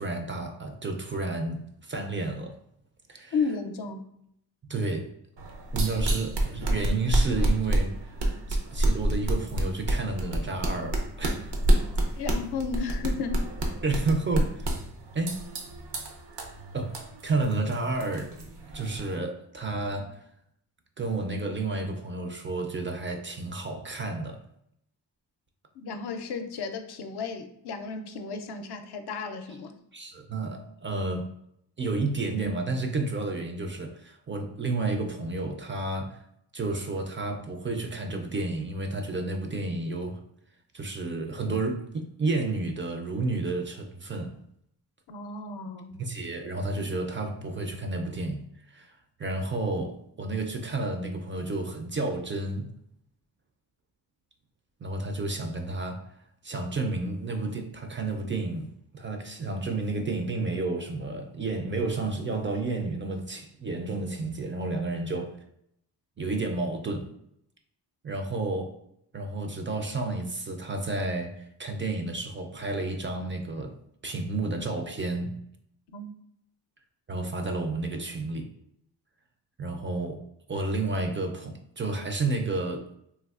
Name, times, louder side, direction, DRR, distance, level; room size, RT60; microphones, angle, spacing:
voice 1, 0.0-2.6 3.1-3.3 4.7-5.1 5.7-8.1 8.5-11.5 13.8-14.8 15.1-15.4 16.7-17.0 17.2-20.2 21.0-24.4 29.9-31.3 31.8-36.2 36.5-40.2 40.7-44.4 46.0-52.7 54.8-56.1 56.4-65.3 66.2-67.1 68.0-68.8 69.1-75.3 77.1-78.5 79.6-80.2 80.5-82.9, right 3 dB, 30° right, 0.4 m, -31 dB
voice 2, 3.3-4.0 12.2-13.5 25.8-29.7 45.1-46.0 75.9-76.1, left 5 dB, 70° left, 0.5 m, -33 dB
sound 1, 5.4-19.1, right 1 dB, 75° right, 0.7 m, -28 dB
3.4 x 2.3 x 2.3 m
cardioid pair, 65°, 41 cm